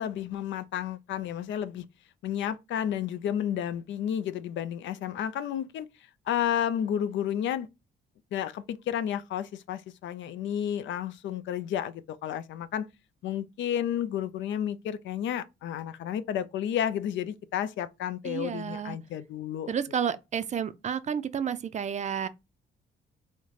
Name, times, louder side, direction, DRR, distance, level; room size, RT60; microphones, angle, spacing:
voice 1, 0.0-1.9 2.2-5.9 6.3-7.7 8.3-12.9 13.2-19.7, left 10 dB, 70° left, 0.4 m, -31 dB
voice 2, 18.2-19.0 19.7-22.3, right 7 dB, 35° right, 0.4 m, -31 dB
3.1 x 2.1 x 3.7 m
cardioid pair, 90°, 20 cm